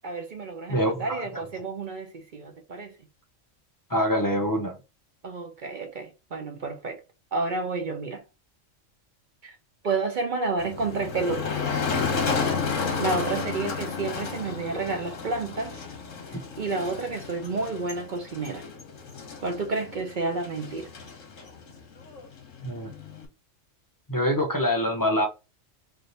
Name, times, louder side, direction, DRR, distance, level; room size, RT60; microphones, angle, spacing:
voice 1, 0.0-2.9 5.2-7.0 7.3-8.2 9.4-9.5 9.8-11.6 12.6-15.8 16.6-18.6 19.4-20.9, right 3 dB, 50° right, 0.6 m, -30 dB
voice 2, 0.7-1.4 3.9-4.8 22.6-22.9 24.1-25.3, equal, 25° left, 0.5 m, -25 dB
Motor vehicle (road), 10.6-23.3, left 5 dB, 75° left, 1.3 m, -32 dB
3.3 x 2.6 x 3.9 m
omnidirectional pair, 1.3 m